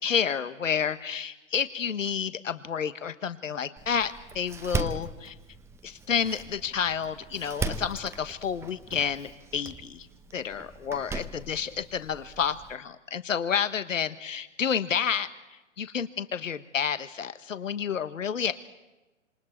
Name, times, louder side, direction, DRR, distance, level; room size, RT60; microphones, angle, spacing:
voice 1, 0.0-5.3 5.8-10.1 10.3-15.3 15.8-18.5, left 7 dB, 80° left, 11 dB, 1.4 m, -30 dB
Door, 3.8-12.7, right 4 dB, 5° right, 0.7 m, -38 dB
28.0 x 27.0 x 4.5 m, 1.1 s
hypercardioid pair, 125°, 38 cm